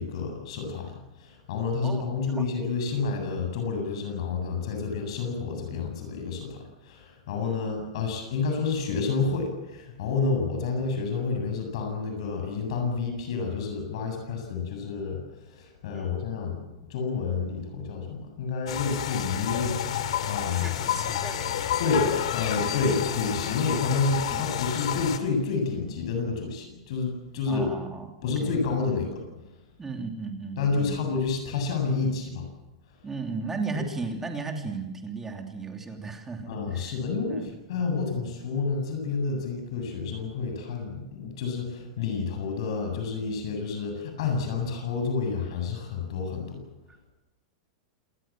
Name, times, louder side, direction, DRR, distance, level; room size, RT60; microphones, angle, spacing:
voice 1, 0.0-6.6 6.8-15.2 15.5-16.6 16.9-19.7 20.2-20.7 21.8-27.7 28.2-29.2 30.6-32.5 36.5-46.6, left 4 dB, 60° left, 4 dB, 7.9 m, -29 dB
voice 2, 1.8-2.5 7.4-7.5 15.9-16.2 20.5-21.8 24.3-24.4 27.5-28.5 28.8-29.0 29.8-31.0 33.0-37.0 37.3-37.6, right 4 dB, 10° right, 3 dB, 3.1 m, -36 dB
sound 1, 18.7-25.2, left 9 dB, 75° left, 3.2 m, -30 dB
28.0 x 20.0 x 7.6 m, 1.0 s
supercardioid pair, 160°, 3 cm